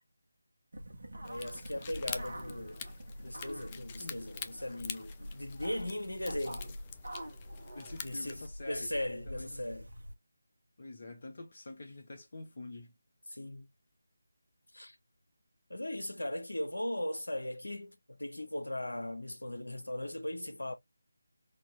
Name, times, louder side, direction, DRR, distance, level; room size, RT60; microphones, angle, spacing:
sound 1, 0.7-10.1, equal, 60° right, 1.3 m, -46 dB
voice 1, 1.2-2.8 3.2-6.8 8.0-9.9 13.3-13.7 14.7-15.0 15.7-20.7, left 1 dB, 75° left, 1.0 m, -38 dB
sound 2, 1.2-8.5, left 7 dB, 20° left, 0.4 m, -46 dB
voice 2, 7.7-8.9 9.2-9.6 10.8-12.9, left 2 dB, 45° left, 0.8 m, -46 dB
4.4 x 2.8 x 2.4 m
figure-of-eight pair, 160°, 0 cm